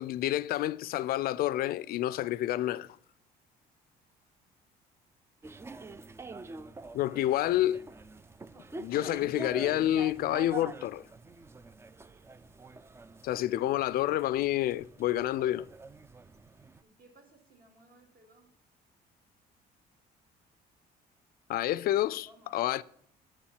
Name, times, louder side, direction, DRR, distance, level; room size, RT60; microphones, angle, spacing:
voice 1, 0.0-3.0 6.9-7.8 8.7-11.1 13.2-15.7 21.5-22.3 22.5-22.8, left 13 dB, 60° left, 0.4 m, -29 dB
sound 1, 5.4-16.8, right 3 dB, 15° right, 0.3 m, -46 dB
voice 2, 16.8-18.6 21.6-22.6, right 1 dB, 55° right, 2.6 m, -60 dB
8.7 x 4.4 x 7.2 m
cardioid pair, 110°, 17 cm